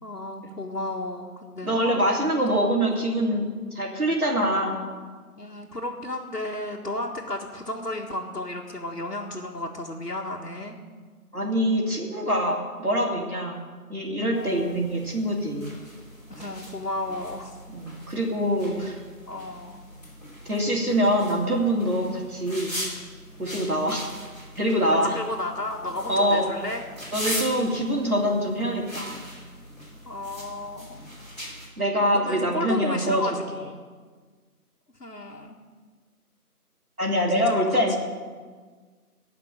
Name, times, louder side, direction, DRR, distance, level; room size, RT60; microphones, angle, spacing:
voice 1, 0.0-2.1 2.5-2.9 5.3-10.8 14.3-14.8 16.3-17.6 19.3-19.8 23.4-23.7 24.9-26.8 27.4-27.5 30.0-31.0 32.0-33.8 35.0-35.6 37.3-38.0, left 1 dB, 85° left, -4 dB, 1.8 m, -33 dB
voice 2, 1.6-4.8 11.3-13.6 13.9-15.7 17.7-19.0 20.5-22.7 23.4-24.1 24.6-25.1 26.1-26.5 27.1-29.2 31.8-33.2 37.0-38.0, equal, 70° right, -1 dB, 3.1 m, -24 dB
sound 1, 14.3-31.7, equal, 25° left, 3.0 m, -40 dB
16.0 x 5.9 x 9.0 m, 1.5 s
figure-of-eight pair, 175°, 46 cm